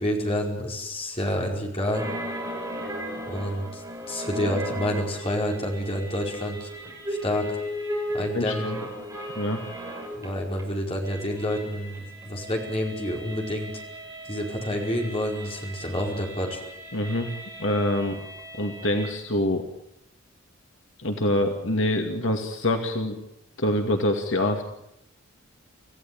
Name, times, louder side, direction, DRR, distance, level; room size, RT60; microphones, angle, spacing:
voice 1, 0.0-2.0 3.3-3.8 4.1-6.7 7.1-7.5 8.1-8.7 10.2-13.7 14.2-16.6, equal, 25° left, 0 dB, 5.1 m, -28 dB
sound 1, 1.9-10.6 10.9-19.1, right 1 dB, 15° right, 6.8 m, -36 dB
voice 2, 8.3-8.8 9.4-9.6 16.9-17.3 17.6-18.2 18.6-19.6 21.0-23.2 23.6-24.7, left 1 dB, 65° left, 4 dB, 2.3 m, -25 dB
27.0 x 16.0 x 8.8 m, 0.80 s
head